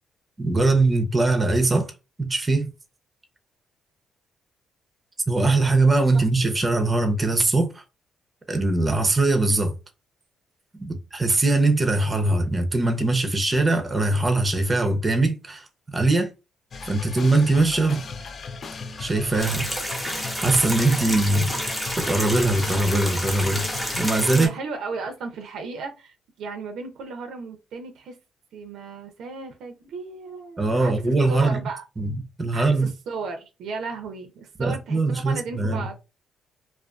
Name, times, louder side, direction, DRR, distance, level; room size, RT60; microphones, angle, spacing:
voice 1, 0.4-1.9 2.2-2.7 5.3-7.8 8.5-9.7 10.8-16.3 16.8-18.0 19.0-19.7 20.4-21.4 22.0-23.6 24.0-24.5 30.6-31.6 32.0-32.9 34.6-35.9, right 2 dB, 25° right, 0.6 m, -21 dB
sound 1, 16.7-24.3, left 4 dB, 50° left, 0.3 m, -36 dB
sound 2, 19.4-24.5, equal, 5° left, 0.8 m, -29 dB
voice 2, 24.3-28.2 28.5-30.9 31.3-31.8 32.5-36.0, right 4 dB, 75° right, 0.5 m, -35 dB
2.4 x 2.3 x 2.3 m
cardioid pair, 90°, 0 cm